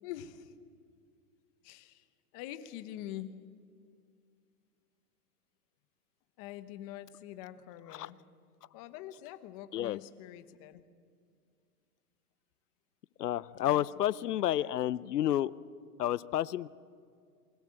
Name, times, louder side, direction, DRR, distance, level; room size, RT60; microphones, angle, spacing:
voice 1, 0.0-0.6 1.6-2.0 2.3-3.3 6.4-8.2 8.7-10.8 13.6-13.9 14.2-14.7, left 12 dB, 20° left, 11 dB, 0.9 m, -45 dB
voice 2, 13.2-15.5 16.0-16.7, left 12 dB, 75° left, 18 dB, 0.9 m, -30 dB
30.0 x 21.0 x 7.7 m, 2.2 s
hypercardioid pair, 160°, 47 cm